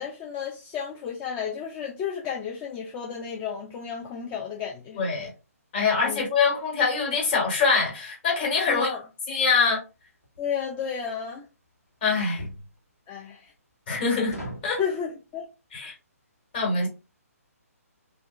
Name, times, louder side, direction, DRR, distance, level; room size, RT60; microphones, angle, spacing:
voice 1, 0.0-5.0 6.0-6.2 8.7-9.0 10.4-11.5 13.1-13.5 14.8-15.5, left 7 dB, 15° left, 0.3 m, -32 dB
voice 2, 4.9-5.3 5.7-8.9 9.3-9.8 12.0-12.4 13.9-14.4 14.6-14.8 15.7-15.9 16.5-16.9, left 4 dB, 35° left, 1.3 m, -24 dB
sound 1, 10.2-10.5 12.4-12.7 14.3-14.7, equal, 85° left, 1.5 m, -37 dB
3.0 x 2.4 x 2.4 m
figure-of-eight pair, 135°, 8 cm